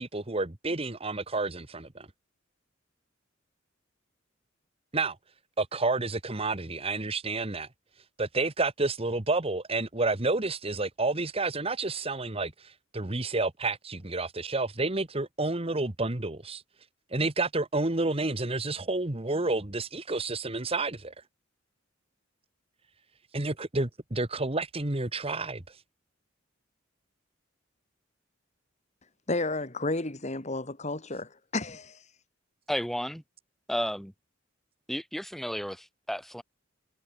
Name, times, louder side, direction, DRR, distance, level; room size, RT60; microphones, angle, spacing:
voice 1, 0.0-2.1 4.9-5.2 5.6-7.7 8.2-16.6 17.1-21.1 23.3-25.8, right 3 dB, 30° right, 1.5 m, -30 dB
voice 2, 29.3-32.0, left 2 dB, 35° left, 2.1 m, -32 dB
voice 3, 32.7-33.2 33.7-34.1 34.9-36.4, equal, ahead, 5.0 m, -32 dB
head